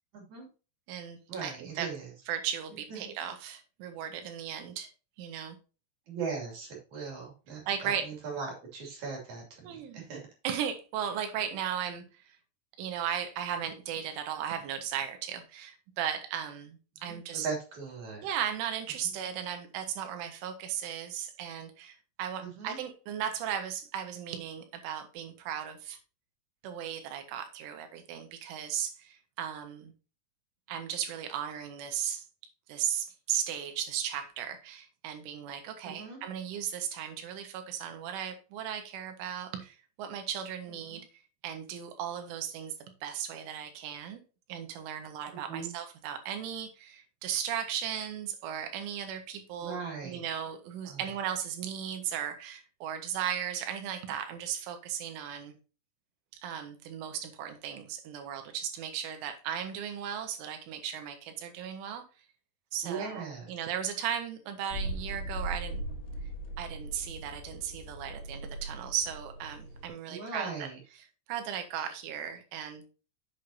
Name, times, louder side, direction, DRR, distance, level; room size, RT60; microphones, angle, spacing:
voice 1, 0.1-0.5 1.3-2.1 2.9-3.1 6.1-10.2 17.0-18.3 19.0-19.1 22.4-22.8 35.8-36.2 40.9-41.0 45.5-45.7 49.6-50.2 50.9-51.0 62.8-63.5 70.1-70.8, right 5 dB, 45° right, -1 dB, 3.5 m, -39 dB
voice 2, 0.9-1.9 2.3-4.9 5.2-5.6 7.7-8.1 9.6-10.1 10.4-12.4 12.8-17.5 18.2-26.0 26.6-29.9 30.7-32.3 32.7-41.0 41.4-42.7 43.0-44.2 44.5-55.6 56.4-62.0 62.7-65.8 66.6-70.7 70.9-72.9, right 9 dB, 80° right, 6 dB, 3.8 m, -36 dB
sound 1, 64.7-69.9, right 1 dB, 80° left, 3.8 m, -39 dB
8.2 x 8.0 x 2.8 m, 0.33 s
omnidirectional pair, 5.6 m